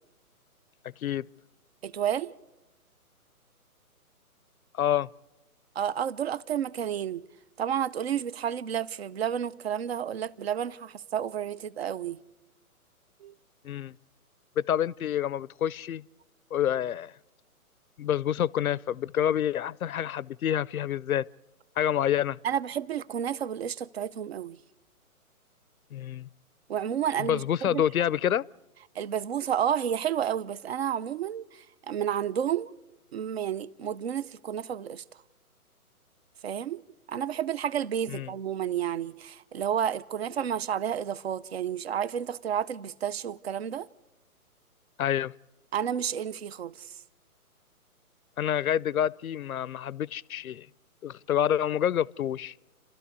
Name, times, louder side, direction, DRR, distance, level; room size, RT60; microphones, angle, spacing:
voice 1, 1.8-2.3 5.8-7.3 7.6-12.2 13.2-13.3 22.4-24.6 26.7-27.8 29.0-31.5 31.9-32.7 33.1-35.0 36.4-36.8 37.1-43.9 45.7-46.9, right 9 dB, 45° right, 0.6 m, -31 dB
voice 2, 4.7-5.1 13.6-13.9 14.6-16.0 16.5-17.1 18.0-21.3 21.8-22.4 25.9-26.3 27.2-28.4 38.1-38.3 45.0-45.3 48.4-50.7 51.0-52.5, left 10 dB, 70° left, 0.6 m, -27 dB
29.5 x 13.0 x 8.2 m
hypercardioid pair, 145°, 44 cm